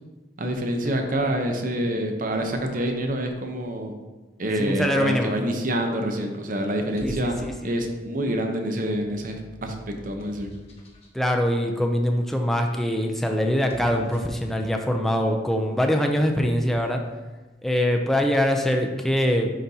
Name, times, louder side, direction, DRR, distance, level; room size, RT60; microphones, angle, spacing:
voice 1, 0.4-3.9 4.4-7.4 7.6-10.5, right 1 dB, 45° right, 4 dB, 0.7 m, -27 dB
voice 2, 4.6-5.3 7.0-7.3 7.6-7.7 11.1-17.0 17.6-19.5, equal, ahead, 2 dB, 0.4 m, -23 dB
sound 1, 6.7-8.1 8.8-11.2 13.5-14.5, equal, 35° left, 0.9 m, -45 dB
10.0 x 3.9 x 2.8 m, 1.2 s
head